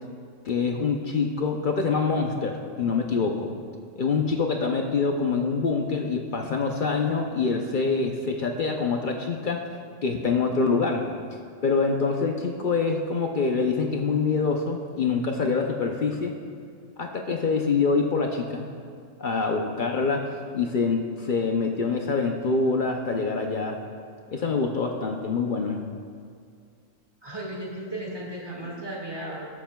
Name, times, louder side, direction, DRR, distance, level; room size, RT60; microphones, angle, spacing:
voice 1, 0.4-3.5 4.0-9.7 10.0-11.1 11.6-16.4 17.0-18.7 19.2-20.3 20.5-23.8 24.3-25.8, left 4 dB, 55° left, 3 dB, 0.6 m, -25 dB
voice 2, 27.2-29.5, right 1 dB, 20° right, -4 dB, 1.9 m, -35 dB
18.5 x 7.3 x 2.3 m, 2.3 s
omnidirectional pair, 1.4 m